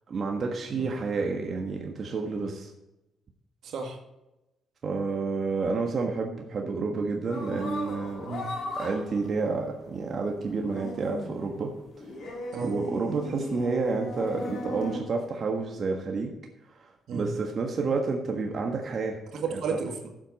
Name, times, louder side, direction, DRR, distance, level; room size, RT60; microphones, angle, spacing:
voice 1, 0.1-2.7 4.8-8.3 8.8-11.7 12.6-16.3 16.8-19.2 19.7-19.8, right 4 dB, 50° right, 1 dB, 1.5 m, -30 dB
voice 2, 3.6-4.0 8.3-8.5 12.5-12.7 17.1-17.3 19.3-20.1, right 5 dB, 70° right, 3 dB, 1.9 m, -33 dB
sound 1, 7.3-15.0, left 2 dB, 60° left, 3.4 m, -38 dB
12.5 x 7.8 x 4.2 m, 0.96 s
cardioid pair, 90°, 0 cm